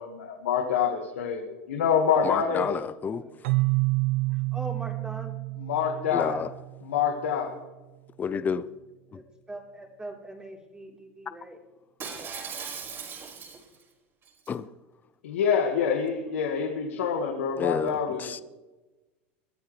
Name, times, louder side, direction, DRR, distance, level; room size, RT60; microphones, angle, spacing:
voice 1, 0.0-2.7 5.6-6.3 6.8-7.5 15.2-18.4, left 7 dB, 85° left, 2 dB, 1.8 m, -26 dB
voice 2, 2.2-3.2 6.1-6.5 8.2-8.6 14.5-14.6 17.6-18.4, left 6 dB, 25° left, 14 dB, 0.7 m, -29 dB
Keyboard (musical), 3.4-7.1, right 26 dB, 75° right, 0.7 m, -28 dB
voice 3, 4.5-5.3 6.2-6.5 9.5-11.6 12.0-12.3, right 2 dB, 10° right, 0 dB, 3.8 m, -41 dB
Shatter, 12.0-13.8 14.2-14.5, right 6 dB, 35° right, 5.4 m, -38 dB
22.5 x 13.5 x 3.3 m, 1.1 s
hypercardioid pair, 105°, 7 cm